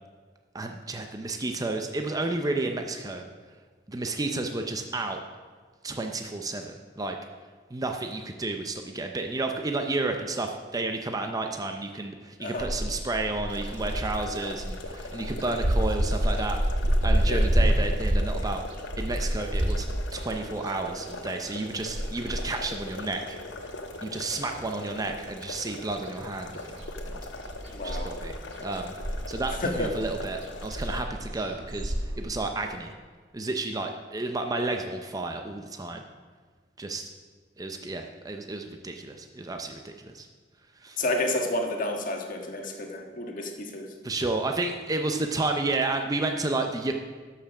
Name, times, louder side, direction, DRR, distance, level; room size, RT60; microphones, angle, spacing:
voice 1, 0.5-3.2 3.9-5.2 5.8-7.2 7.7-16.6 17.0-18.6 19.0-19.9 20.1-23.4 24.0-27.2 27.8-28.9 29.3-32.9 33.3-36.0 36.8-37.1 37.6-40.3 40.8-41.0 44.0-46.9, right 2 dB, 20° right, 4 dB, 0.6 m, -31 dB
sound 1, 12.6-24.2 24.5-25.8 26.1-32.2, equal, 75° right, 1.4 m, -29 dB
sound 2, 13.5-31.0, left 2 dB, 85° left, 1.1 m, -41 dB
voice 2, 27.7-28.1 29.5-29.9 41.0-43.9, left 2 dB, 50° left, 2 dB, 1.5 m, -30 dB
13.0 x 5.8 x 6.1 m, 1.5 s
head